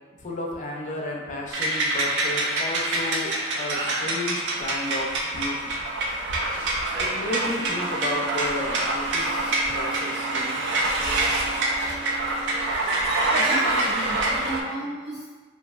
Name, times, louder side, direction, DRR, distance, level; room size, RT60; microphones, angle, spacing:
voice 1, 0.2-5.6 7.0-10.6, left 2 dB, 35° left, -1 dB, 0.4 m, -33 dB
sound 1, 1.5-14.6, right 2 dB, 60° right, 0.4 m, -26 dB
Bowed string instrument, 7.4-12.8, right 4 dB, ahead, 0.9 m, -41 dB
voice 2, 13.3-15.3, right 1 dB, 75° right, -17 dB, 1.4 m, -34 dB
2.9 x 2.5 x 2.3 m, 1.4 s
head